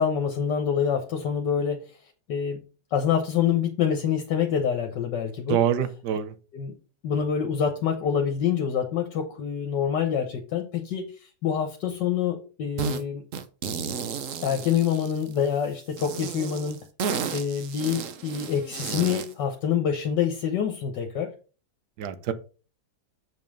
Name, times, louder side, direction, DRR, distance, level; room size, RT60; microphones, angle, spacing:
voice 1, 0.0-1.9 2.3-2.6 2.9-5.6 6.5-6.7 7.0-13.2 14.4-16.8 17.3-21.3, left 8 dB, 75° left, 4 dB, 1.7 m, -26 dB
voice 2, 5.5-6.3 22.0-22.3, right 9 dB, 70° right, 12 dB, 1.4 m, -25 dB
sound 1, 12.8-13.0 13.3-15.5 16.0-19.3, right 6 dB, 55° right, 1.1 m, -33 dB
7.5 x 5.4 x 5.2 m, 0.36 s
omnidirectional pair, 1.9 m